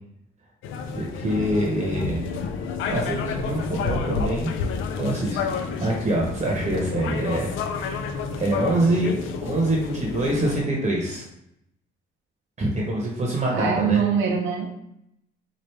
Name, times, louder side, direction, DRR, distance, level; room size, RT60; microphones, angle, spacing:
sound 1, 0.6-10.6, left 5 dB, 85° left, 0.4 m, -30 dB
voice 1, 0.9-2.5 2.9-4.5 5.0-5.4 5.8-9.1 9.4-11.2 12.6-14.0, right 1 dB, 35° right, -2 dB, 0.9 m, -25 dB
voice 2, 13.5-14.7, right 6 dB, 90° right, -1 dB, 0.6 m, -24 dB
4.4 x 2.4 x 3.3 m, 0.77 s
cardioid pair, 90°, 20 cm